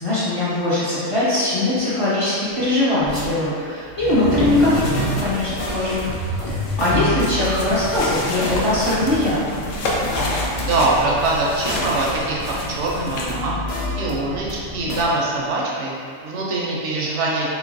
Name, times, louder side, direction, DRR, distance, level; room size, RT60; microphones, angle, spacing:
voice 1, 0.0-9.6, left 2 dB, 30° left, -11 dB, 0.7 m, -21 dB
sound 1, 3.0-3.3 3.8-12.4, right 2 dB, 30° right, 0.3 m, -31 dB
sound 2, 4.3-13.4, left 1 dB, 85° left, 1.0 m, -30 dB
sound 3, 4.5-15.0, left 1 dB, 60° left, 0.3 m, -29 dB
voice 2, 10.2-13.6 13.9-17.5, right 2 dB, 70° right, -3 dB, 0.9 m, -23 dB
3.4 x 3.2 x 2.5 m, 2.3 s
omnidirectional pair, 1.3 m